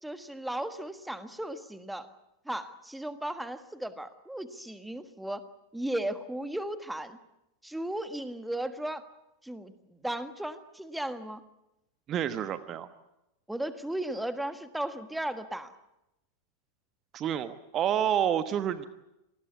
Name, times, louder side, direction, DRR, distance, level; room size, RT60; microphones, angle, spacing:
voice 1, 0.0-2.1 2.4-5.4 5.7-7.2 7.6-9.0 9.4-9.7 10.0-11.4 13.5-15.7, right 1 dB, 5° right, 11 dB, 1.5 m, -35 dB
voice 2, 12.1-12.9 17.1-18.9, right 9 dB, 30° right, 12 dB, 1.1 m, -29 dB
27.0 x 19.5 x 8.5 m, 0.90 s
figure-of-eight pair, 90°, 0 cm